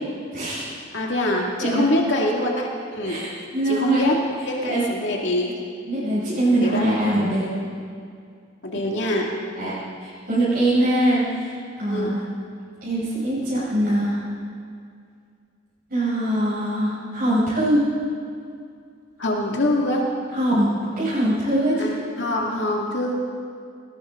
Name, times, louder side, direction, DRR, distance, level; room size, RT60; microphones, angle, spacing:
voice 1, 0.3-0.7 1.6-2.0 3.0-4.0 4.6-4.8 5.9-7.5 9.5-9.7 10.0-12.2 12.8-14.2 15.9-17.8 20.3-21.9, right 1 dB, 50° right, -10 dB, 5.3 m, -22 dB
voice 2, 0.9-3.2 3.7-4.2 4.4-5.5 6.6-7.1 8.6-9.3 11.9-12.1 19.2-20.0 21.8-23.1, left 1 dB, 65° left, -1 dB, 2.2 m, -24 dB
19.5 x 18.0 x 3.8 m, 2.3 s
head